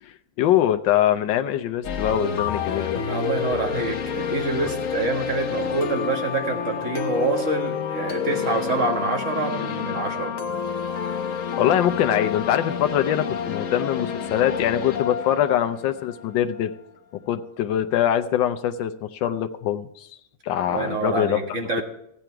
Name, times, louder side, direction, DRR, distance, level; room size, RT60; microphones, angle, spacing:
voice 1, 0.0-3.0 11.6-16.7 17.3-20.1 20.4-21.4, left 11 dB, 85° left, 8 dB, 1.4 m, -23 dB
sound 1, 1.8-16.7, left 7 dB, 55° left, 1.1 m, -29 dB
voice 2, 3.1-10.3 20.7-21.8, right 3 dB, 40° right, 2 dB, 2.0 m, -26 dB
15.0 x 8.9 x 4.6 m, 0.75 s
omnidirectional pair, 2.0 m